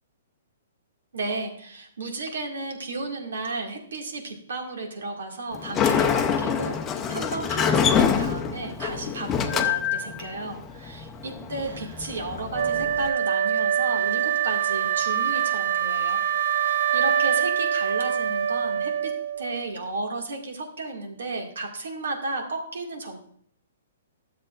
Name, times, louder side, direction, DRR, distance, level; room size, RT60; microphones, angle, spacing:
voice 1, 1.1-16.2 16.5-23.2, right 3 dB, 85° right, 1 dB, 2.0 m, -33 dB
Sliding door, 5.5-13.1, left 7 dB, 15° left, 0.6 m, -26 dB
Wind instrument woodwind instrument, 12.5-19.5, right 9 dB, 60° right, 0.8 m, -24 dB
12.5 x 7.4 x 2.5 m, 0.64 s
hypercardioid pair, 165°, 0 cm